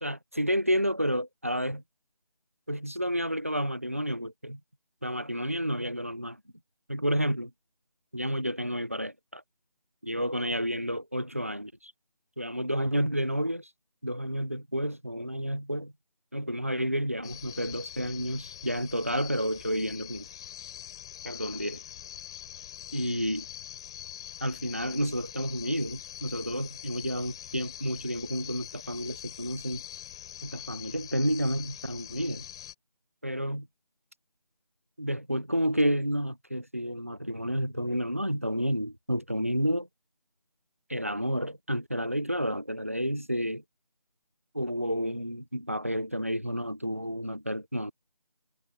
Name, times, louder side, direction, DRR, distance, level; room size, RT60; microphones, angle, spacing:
voice 1, 0.0-1.8 2.7-4.6 5.0-6.4 6.9-7.5 8.1-9.4 10.0-11.9 12.4-13.7 14.0-15.9 16.3-20.3 21.2-21.8 22.9-23.5 24.4-29.8 30.4-32.5 33.2-33.6 35.0-39.9 40.9-43.6 44.5-47.9, equal, 20° right, 0.9 m, -30 dB
sound 1, 17.2-32.7, left 11 dB, 10° left, 6.1 m, -44 dB
figure-of-eight pair, 180°, 21 cm